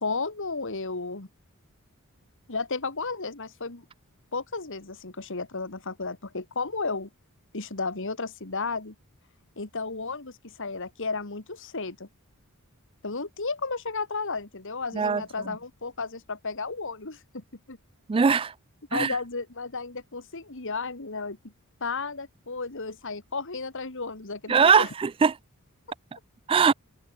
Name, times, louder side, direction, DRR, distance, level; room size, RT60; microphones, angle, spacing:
voice 1, 0.0-1.3 2.5-3.9 4.3-7.1 7.5-8.9 9.6-12.1 13.0-17.8 18.9-21.4 21.8-24.9, left 4 dB, 60° left, 2.2 m, -33 dB
voice 2, 18.1-18.5 18.9-19.1 24.5-25.4 26.5-26.7, right 6 dB, 25° right, 0.3 m, -21 dB
head